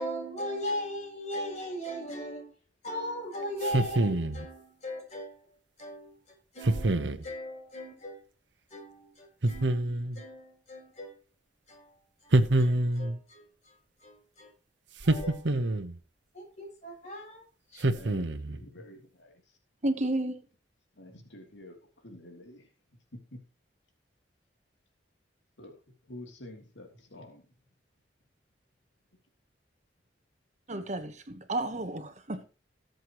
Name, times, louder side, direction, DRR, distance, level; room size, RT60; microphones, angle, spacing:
voice 1, 0.0-2.5 2.8-5.4 5.8-6.2 6.5-8.2 8.7-11.1 11.7-11.9 12.2-12.3 12.6-13.5 14.0-14.5 15.0-15.4 16.3-17.4 17.7-17.9, equal, 40° left, 7.7 m, -38 dB
sound 1, 3.6-4.5 6.6-7.2 9.4-10.2 12.3-13.2 15.0-16.0 17.8-18.6, right 1 dB, 85° right, 1.1 m, -26 dB
voice 2, 17.9-19.6 21.0-22.7 23.3-23.4 25.6-25.8 26.1-27.4, left 1 dB, 90° left, 3.1 m, -48 dB
voice 3, 19.8-20.4 30.7-32.4, right 1 dB, 40° right, 1.2 m, -32 dB
18.5 x 8.0 x 3.1 m
head